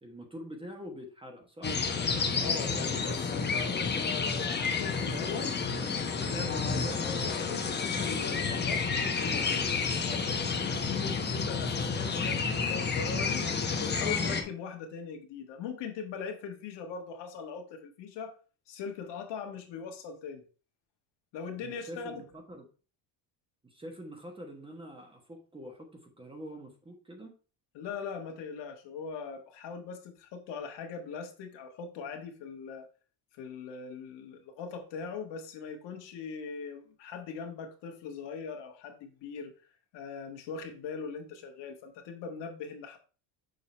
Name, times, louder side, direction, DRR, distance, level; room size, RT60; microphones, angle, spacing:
voice 1, 0.0-1.8 21.6-22.6 23.6-27.3, equal, 10° right, 3 dB, 1.2 m, -45 dB
sound 1, 1.6-14.4, left 5 dB, 20° left, 1.0 m, -30 dB
voice 2, 2.4-5.5 6.2-9.7 10.1-13.4 13.8-18.4 18.7-20.4 21.3-22.2 27.7-32.9 33.3-39.5 39.9-43.0, left 5 dB, 65° left, 4 dB, 1.7 m, -40 dB
6.6 x 3.9 x 4.3 m, 0.36 s
cardioid pair, 140°, 46 cm